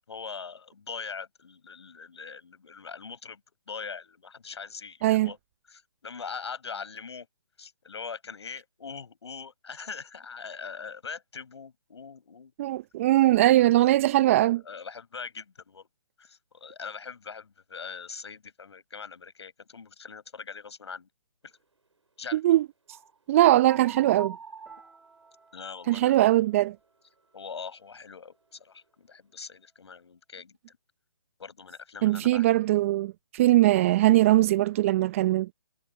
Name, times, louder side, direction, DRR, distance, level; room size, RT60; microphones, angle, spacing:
voice 1, 0.1-3.4 3.7-5.4 5.7-7.3 7.6-12.5 14.6-15.9 16.2-21.1 21.4-21.5 22.2-22.6 25.5-26.2 27.3-30.8 31.4-32.4, left 5 dB, 65° left, 6.7 m, -42 dB
voice 2, 12.6-14.6 22.3-22.7 23.3-24.4 25.9-26.7 32.0-35.5, right 15 dB, 30° right, 0.6 m, -21 dB
sound 1, 22.9-23.2 23.6-25.7, right 5 dB, 90° right, 3.2 m, -43 dB
Piano, 24.7-29.6, right 3 dB, 5° right, 5.4 m, -63 dB
figure-of-eight pair, 145°, 15 cm